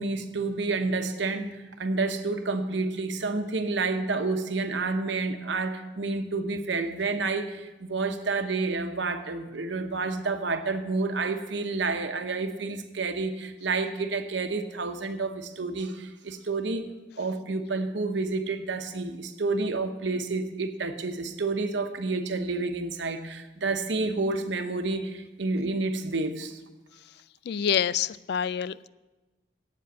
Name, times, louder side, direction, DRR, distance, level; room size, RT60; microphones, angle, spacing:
voice 1, 0.0-1.5 1.8-16.9 17.2-26.6, right 3 dB, 75° right, 7 dB, 0.9 m, -29 dB
voice 2, 27.5-28.9, left 8 dB, 60° left, 18 dB, 0.3 m, -27 dB
8.7 x 7.6 x 8.1 m, 1.1 s
head